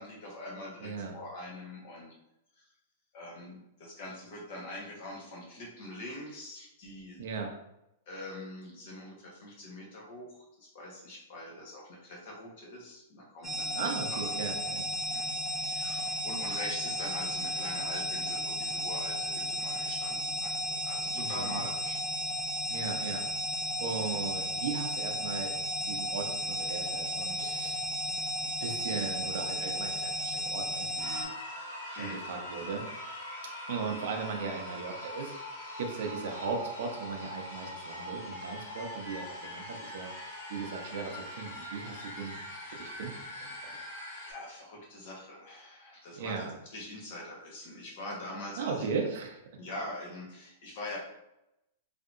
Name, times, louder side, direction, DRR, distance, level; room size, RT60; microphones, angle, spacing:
voice 1, 0.0-2.1 2.5-2.6 3.1-7.2 8.1-13.7 14.1-14.3 15.1-22.0 22.7-22.8 31.9-32.2 44.2-48.9 49.6-51.0, left 1 dB, 50° left, -2 dB, 1.0 m, -43 dB
voice 2, 0.8-1.1 7.2-7.5 13.7-14.9 21.1-21.6 22.7-23.3 23.8-25.5 25.8-27.8 28.6-31.3 31.9-32.9 33.4-35.3 35.8-40.1 40.5-42.4 42.7-43.8 46.2-46.5 48.6-49.4, right 5 dB, 60° right, 2 dB, 0.6 m, -37 dB
sound 1, 13.4-31.2, equal, 5° left, 0.6 m, -34 dB
sound 2, 31.0-44.3, left 1 dB, 80° left, 1.4 m, -42 dB
3.4 x 2.7 x 2.5 m, 0.86 s
supercardioid pair, 165°, 0 cm